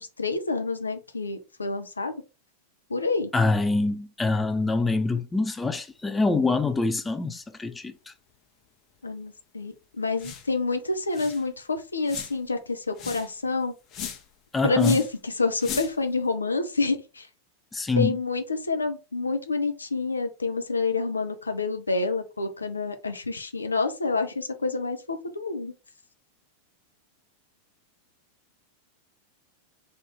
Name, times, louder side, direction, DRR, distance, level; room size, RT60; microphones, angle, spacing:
voice 1, 0.0-2.1 2.9-3.3 9.0-13.7 14.6-17.3 18.0-25.7, left 3 dB, 80° left, 0.6 m, -28 dB
voice 2, 3.3-8.1 14.5-15.0 17.7-18.2, left 3 dB, 10° left, 0.4 m, -25 dB
sound 1, 10.2-10.5 10.8-10.9 11.1-11.5 12.0-12.5 13.0-13.3 13.9-14.3 14.8-15.1 15.6-16.1, left 8 dB, 35° left, 0.9 m, -37 dB
3.6 x 2.6 x 4.3 m
figure-of-eight pair, 90°, 0 cm